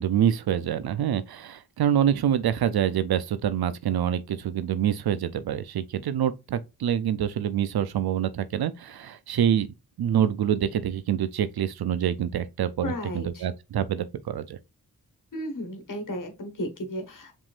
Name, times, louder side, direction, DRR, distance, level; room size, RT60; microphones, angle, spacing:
voice 1, 0.0-9.7 10.0-14.6, right 9 dB, 80° right, 0.5 m, -26 dB
voice 2, 12.8-13.5 15.3-17.3, equal, 55° left, 1.4 m, -34 dB
5.0 x 3.7 x 2.4 m
cardioid pair, 50°, 37 cm